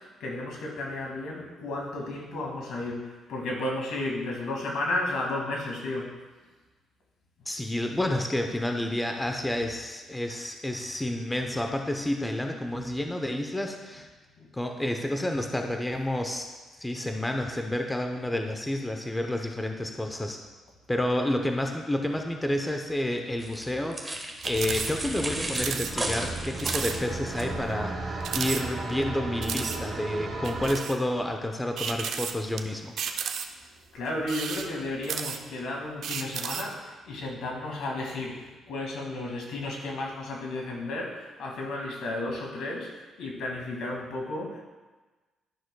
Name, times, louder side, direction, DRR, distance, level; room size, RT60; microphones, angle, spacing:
voice 1, 0.0-6.1 14.4-14.5 33.9-44.6, left 2 dB, 75° left, -1 dB, 1.9 m, -33 dB
voice 2, 7.5-14.1 14.5-16.5 16.8-20.4 20.9-33.0, left 1 dB, 10° left, 4 dB, 0.6 m, -30 dB
sound 1, 23.4-27.5, right 1 dB, 15° right, 1.0 m, -34 dB
sound 2, 24.4-24.9 25.2-25.3 25.5-25.9 26.3-26.4 26.6-27.0 27.4-27.5 28.2-29.0 29.4-29.8 30.4-31.0 31.8-32.6 33.0-33.7 34.2-35.6 36.0-36.7, right 7 dB, 70° right, 0.5 m, -33 dB
sound 3, 24.5-30.8, right 2 dB, 50° right, 1.3 m, -35 dB
11.5 x 6.2 x 2.2 m, 1.2 s
cardioid pair, 90°, 0 cm